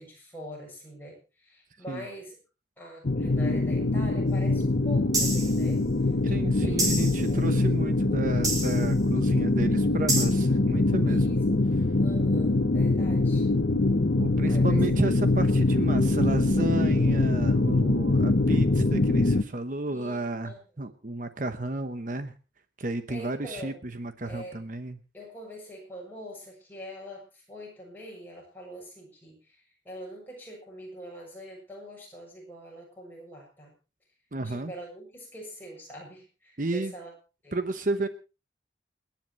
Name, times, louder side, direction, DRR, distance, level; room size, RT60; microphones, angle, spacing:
voice 1, 0.0-2.4 2.8-5.8 6.3-6.8 7.3-7.6 11.0-11.4 12.0-13.5 14.4-14.8 19.9-20.9 23.1-23.8 24.2-24.6 25.1-33.7 34.4-37.1 37.4-37.6, equal, 10° left, -2 dB, 7.0 m, -44 dB
sound 1, 3.0-19.4, left 2 dB, 55° left, 0.8 m, -23 dB
sound 2, 5.1-5.6 6.8-7.3 8.4-8.9 10.1-10.2, right 2 dB, 20° right, 3.8 m, -27 dB
voice 2, 6.2-11.4 14.1-22.3 22.8-25.0 34.3-34.7 36.6-36.9 37.5-38.1, right 2 dB, 45° right, 9 dB, 0.9 m, -32 dB
29.5 x 10.5 x 3.1 m, 0.31 s
head